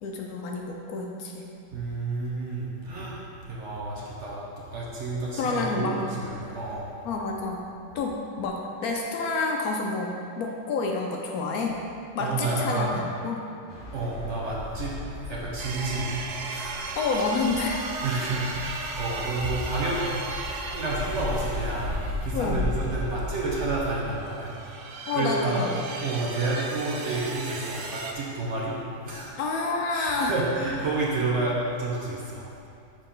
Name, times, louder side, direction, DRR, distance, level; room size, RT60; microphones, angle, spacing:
voice 1, 0.0-1.4 5.4-6.0 7.0-7.6 7.9-11.8 12.1-13.4 17.0-17.8 22.3-22.7 25.1-25.8 29.4-30.3, left 3 dB, 70° left, 0 dB, 1.0 m, -29 dB
voice 2, 1.7-6.9 12.2-12.9 13.9-14.9 15.3-16.8 18.0-20.0 20.7-24.5 25.1-25.6 26.0-28.7 29.0-29.3 29.9-32.5, right 2 dB, 50° right, -5 dB, 1.0 m, -30 dB
sound 1, 13.7-23.8, left 2 dB, 50° left, 1.1 m, -36 dB
sound 2, 15.6-23.5 24.0-28.1, right 3 dB, 70° right, 0.7 m, -37 dB
6.5 x 4.8 x 3.7 m, 2.6 s
omnidirectional pair, 1.8 m